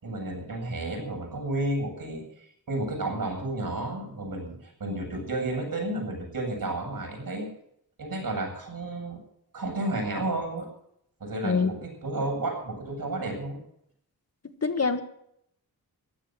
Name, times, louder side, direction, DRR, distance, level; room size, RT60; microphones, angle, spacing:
voice 1, 0.0-7.5 8.0-9.2 9.5-10.7 11.2-13.6, right 2 dB, 60° right, 2 dB, 8.0 m, -32 dB
voice 2, 14.6-15.0, left 4 dB, 40° left, 7 dB, 1.5 m, -24 dB
15.0 x 11.5 x 7.7 m, 0.72 s
wide cardioid pair, 105°, 38 cm